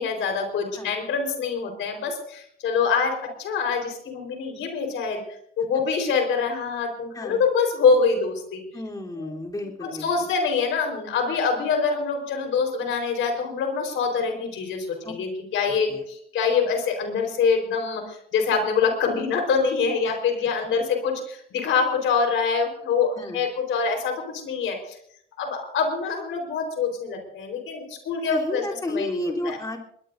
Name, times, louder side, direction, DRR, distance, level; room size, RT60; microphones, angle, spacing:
voice 1, 0.0-5.2 5.6-8.6 9.2-9.3 9.8-25.0 25.4-29.6, left 5 dB, 80° left, 4 dB, 4.3 m, -25 dB
voice 2, 8.7-10.3 15.0-15.1 15.9-16.0 20.0-20.2 23.2-23.4 28.3-29.8, left 1 dB, 20° left, -2 dB, 3.5 m, -32 dB
21.0 x 21.0 x 2.6 m, 0.68 s
cardioid pair, 90°, 20 cm